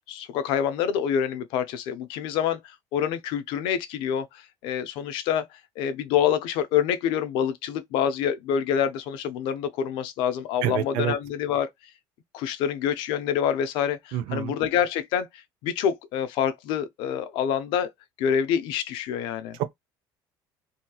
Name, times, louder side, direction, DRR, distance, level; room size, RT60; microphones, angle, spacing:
voice 1, 0.1-5.5 5.8-11.7 12.3-17.9 18.2-19.6, left 8 dB, 70° left, 0.6 m, -26 dB
voice 2, 10.6-11.1 14.1-14.5, right 11 dB, 75° right, 0.6 m, -27 dB
2.9 x 2.8 x 2.3 m
cardioid pair, 170°, 9 cm